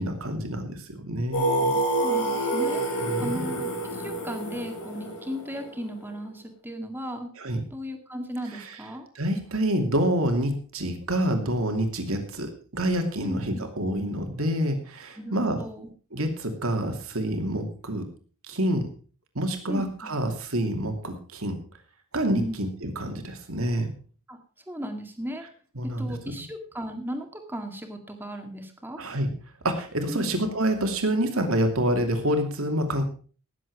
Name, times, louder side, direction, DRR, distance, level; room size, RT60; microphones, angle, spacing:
voice 1, 0.0-1.7 3.0-3.4 7.4-7.6 8.5-8.8 9.1-15.6 16.1-18.0 18.5-18.9 19.3-21.6 22.1-23.9 25.8-26.2 29.0-29.3 29.6-33.0, right 1 dB, 70° right, 5 dB, 2.7 m, -27 dB
Singing, 1.3-6.1, right 1 dB, 75° left, 5.8 m, -27 dB
voice 2, 1.7-2.8 3.2-7.3 7.7-9.1 13.2-13.7 15.2-15.9 19.7-20.1 22.4-22.6 24.3-24.4 24.7-25.4 25.8-29.0 30.1-30.3, equal, 10° right, 5 dB, 1.9 m, -36 dB
18.5 x 7.7 x 4.8 m, 0.40 s
head